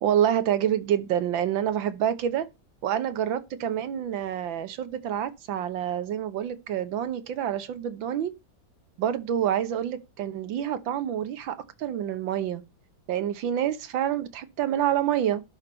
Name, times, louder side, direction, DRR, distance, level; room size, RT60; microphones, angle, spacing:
voice 1, 0.0-2.5 2.8-8.3 9.0-12.6 13.1-15.4, right 10 dB, 90° right, 1.7 m, -27 dB
11.5 x 5.3 x 4.3 m
omnidirectional pair, 2.0 m